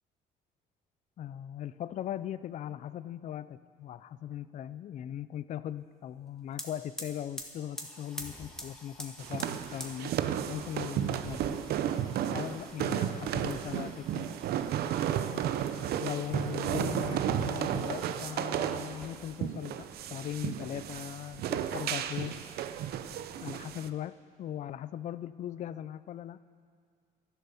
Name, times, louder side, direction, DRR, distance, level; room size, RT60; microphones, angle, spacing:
voice 1, 1.2-10.1 10.5-11.6 12.3-14.3 15.3-15.5 16.0-22.4 23.4-26.4, left 10 dB, 45° left, 16 dB, 0.4 m, -39 dB
sound 1, 6.2-6.3 6.5-18.4 18.9-19.7 19.9-20.9, equal, 5° left, 1.7 m, -49 dB
sound 2, 9.2-23.9, right 10 dB, 70° right, 0.7 m, -33 dB
12.0 x 11.5 x 7.0 m, 2.1 s
cardioid pair, 110°, 17 cm